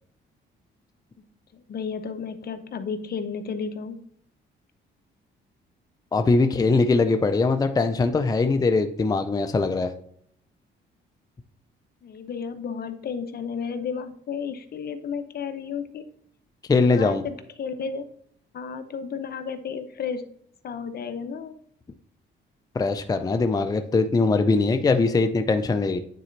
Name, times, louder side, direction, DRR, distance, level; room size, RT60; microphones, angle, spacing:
voice 1, 1.5-4.0 12.0-16.1 16.9-18.1 18.5-20.2 20.6-21.6, left 6 dB, 55° left, 10 dB, 0.7 m, -32 dB
voice 2, 6.1-9.9 16.7-17.2 22.8-26.0, left 3 dB, 20° left, 8 dB, 0.5 m, -21 dB
9.1 x 4.2 x 3.2 m, 0.66 s
cardioid pair, 90°, 20 cm